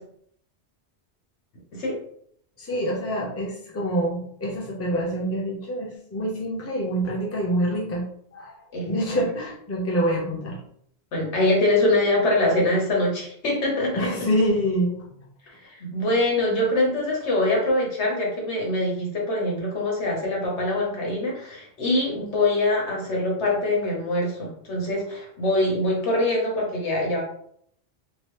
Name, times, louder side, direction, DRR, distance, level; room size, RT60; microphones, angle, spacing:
voice 1, 2.6-8.0 8.3-8.5 8.9-10.6 14.0-15.2, equal, 15° left, -3 dB, 0.6 m, -26 dB
voice 2, 11.1-14.1 15.6-27.2, left 2 dB, 80° left, -2 dB, 1.3 m, -24 dB
2.9 x 2.3 x 3.1 m, 0.66 s
omnidirectional pair, 1.1 m